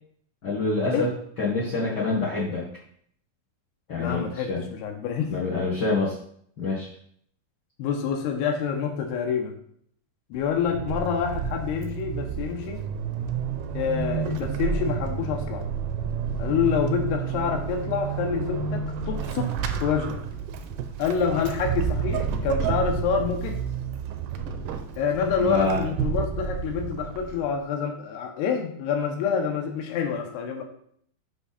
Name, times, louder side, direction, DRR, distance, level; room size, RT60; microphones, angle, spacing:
voice 1, 0.4-1.1 1.4-2.7 3.9-4.6 5.3-6.1 6.6-6.9 25.4-25.8, left 3 dB, 55° left, -6 dB, 1.1 m, -26 dB
voice 2, 4.0-5.3 7.8-9.5 10.3-12.8 13.7-15.6 16.4-19.5 19.8-20.2 21.0-23.6 25.0-30.6, left 6 dB, 85° left, 2 dB, 3.0 m, -27 dB
Vehicle / Accelerating revving vroom / Squeak, 10.3-27.6, right 7 dB, 85° right, 1.9 m, -30 dB
7.2 x 5.9 x 4.1 m, 0.64 s
omnidirectional pair, 4.6 m